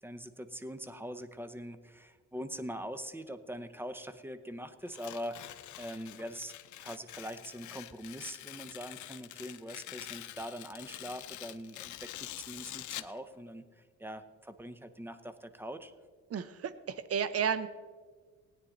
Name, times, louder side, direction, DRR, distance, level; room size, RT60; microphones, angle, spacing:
voice 1, 0.0-6.5 6.8-15.9, equal, 5° right, 11 dB, 0.8 m, -43 dB
Tearing, 4.9-13.2, left 14 dB, 75° left, 0.6 m, -46 dB
voice 2, 16.3-17.7, right 7 dB, 50° right, 14 dB, 0.8 m, -32 dB
17.0 x 9.4 x 3.9 m, 1.5 s
cardioid pair, 90°, 30 cm